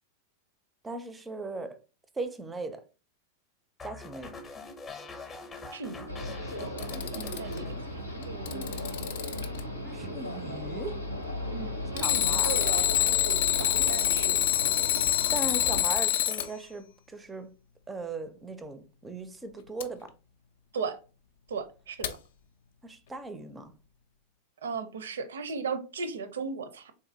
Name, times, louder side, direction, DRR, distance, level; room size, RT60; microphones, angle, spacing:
voice 1, 0.8-1.8 2.1-2.8 3.8-4.4 9.8-11.0 12.0-13.2 15.3-17.5 17.9-20.1 22.8-23.7, right 3 dB, 15° right, 0.4 m, -38 dB
sound 1, 3.8-8.2 8.5-8.9, left 4 dB, 20° left, 0.7 m, -45 dB
voice 2, 5.7-7.6 7.9-8.0 8.2-8.7 11.5-13.1 13.6-14.4 20.7-21.0 21.5-22.2 24.6-26.9, right 5 dB, 65° right, 0.5 m, -37 dB
sound 2, 6.1-15.8, left 1 dB, 85° left, 0.7 m, -36 dB
Alarm, 6.6-7.6 8.2-9.6 12.0-16.5 19.8-19.9 22.0-22.1, left 12 dB, 55° left, 0.4 m, -26 dB
3.8 x 2.7 x 2.6 m
figure-of-eight pair, 90°, 0 cm